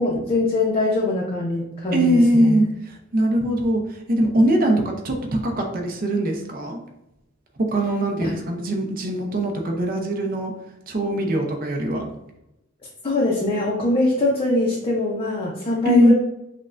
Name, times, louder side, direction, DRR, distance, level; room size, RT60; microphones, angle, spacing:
voice 1, 0.0-2.6 8.2-8.3 13.0-16.1, left 2 dB, 25° left, -4 dB, 0.6 m, -22 dB
voice 2, 1.9-5.2 5.4-6.8 7.7-10.5 10.9-12.1 15.9-16.1, right 1 dB, 45° right, 2 dB, 0.6 m, -21 dB
5.8 x 2.2 x 2.4 m, 0.88 s
head